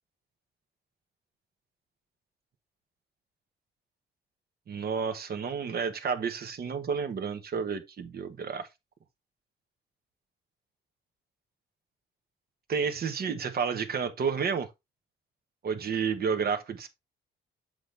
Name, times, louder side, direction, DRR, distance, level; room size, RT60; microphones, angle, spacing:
voice 1, 4.7-8.7 12.7-14.7 15.6-16.9, right 6 dB, 50° right, 1.2 m, -31 dB
7.8 x 4.1 x 3.3 m
cardioid pair, 90°, 20 cm